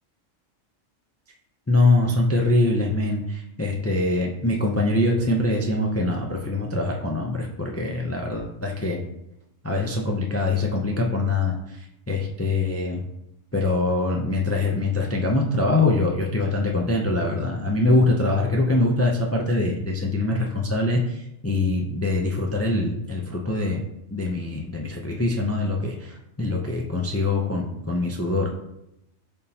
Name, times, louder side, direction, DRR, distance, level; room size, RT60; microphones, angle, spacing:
voice 1, 1.7-9.0 9.6-11.8 12.1-13.0 13.5-23.8 24.1-28.5, left 2 dB, 20° left, 0 dB, 0.4 m, -23 dB
11.0 x 3.6 x 2.8 m, 0.85 s
omnidirectional pair, 1.3 m